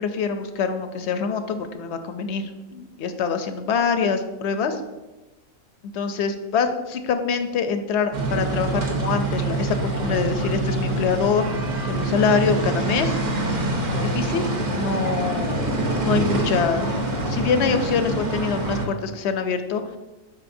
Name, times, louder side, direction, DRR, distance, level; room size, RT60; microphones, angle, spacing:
voice 1, 0.0-4.8 5.9-11.5 11.9-13.2 13.9-16.9 17.3-19.8, left 5 dB, 65° left, 8 dB, 0.8 m, -25 dB
sound 1, 8.1-18.9, right 2 dB, 40° right, 0.9 m, -25 dB
8.4 x 5.3 x 2.6 m, 1.1 s
omnidirectional pair, 1.4 m